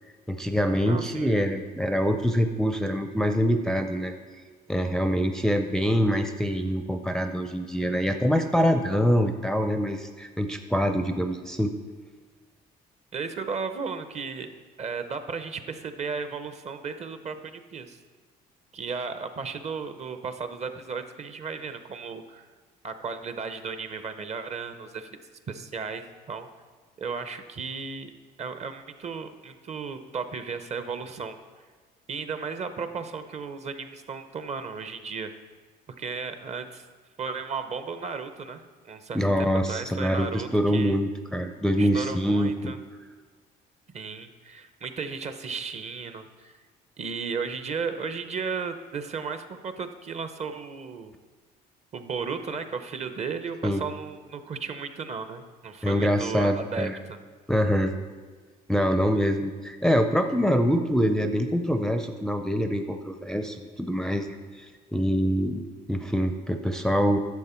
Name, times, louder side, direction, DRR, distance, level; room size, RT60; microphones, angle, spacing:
voice 1, 0.3-4.1 4.7-11.7 39.1-42.7 53.6-53.8 55.8-57.0 57.5-57.9 58.7-64.7 64.9-65.6 65.9-67.2, equal, 5° left, 6 dB, 0.5 m, -25 dB
voice 2, 0.9-1.3 13.1-14.5 14.8-18.0 18.7-22.5 22.8-25.1 25.5-26.5 27.0-28.1 28.4-31.4 32.1-35.3 36.0-36.9 37.2-41.0 41.8-42.8 43.9-46.5 47.0-51.1 51.9-57.2, right 5 dB, 40° right, 9 dB, 0.8 m, -35 dB
10.5 x 6.6 x 4.4 m, 1.5 s
cardioid pair, 110°, 17 cm